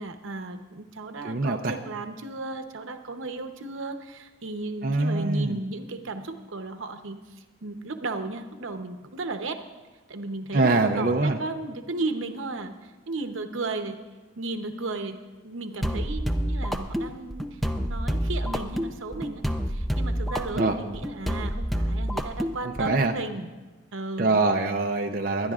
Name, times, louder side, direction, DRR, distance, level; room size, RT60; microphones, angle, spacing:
voice 1, 0.0-9.6 10.1-14.0 14.4-23.5 23.9-24.4 25.4-25.5, right 3 dB, 85° right, 6 dB, 0.9 m, -34 dB
voice 2, 1.2-1.7 4.8-5.6 10.5-11.4 20.6-20.8 22.6-23.1 24.2-25.5, right 3 dB, 45° right, 3 dB, 0.6 m, -24 dB
sound 1, 15.8-23.0, equal, ahead, 0.5 m, -28 dB
23.0 x 10.5 x 2.4 m, 1.2 s
head